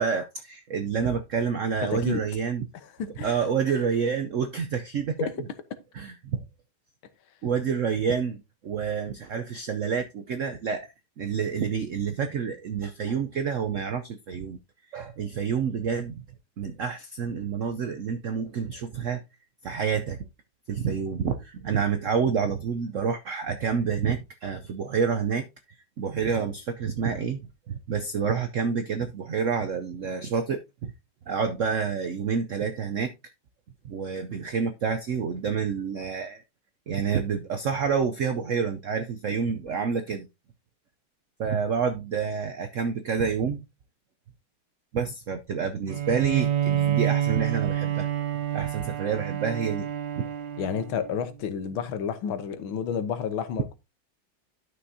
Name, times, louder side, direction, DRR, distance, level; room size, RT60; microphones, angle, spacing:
voice 1, 0.0-2.7 3.2-5.3 5.9-6.4 7.4-14.6 14.9-16.2 16.6-19.2 19.6-20.2 20.7-25.5 26.0-27.4 27.7-30.9 31.3-33.1 33.8-36.4 36.9-40.3 41.4-43.6 44.9-48.1 48.5-49.9 50.2-50.3, right 6 dB, 85° right, 0.6 m, -28 dB
voice 2, 1.9-2.2 3.0-3.4 5.2-5.3 50.6-53.7, left 7 dB, 80° left, 1.8 m, -30 dB
Bowed string instrument, 45.9-51.4, right 11 dB, 65° right, 1.5 m, -28 dB
11.5 x 6.2 x 2.7 m
omnidirectional pair, 2.2 m